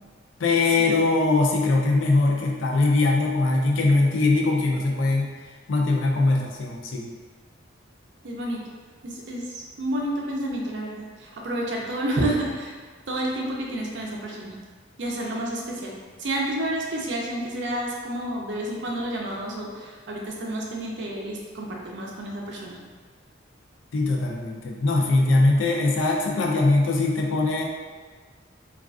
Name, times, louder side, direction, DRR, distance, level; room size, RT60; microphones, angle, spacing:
voice 1, 0.4-5.3 5.7-7.1 23.9-27.6, left 2 dB, 80° left, 0 dB, 0.4 m, -21 dB
voice 2, 8.2-8.6 9.0-12.7 13.1-14.5 15.0-15.9 16.2-22.8, right 1 dB, 65° right, -2 dB, 0.4 m, -30 dB
2.3 x 2.3 x 2.3 m, 1.5 s
head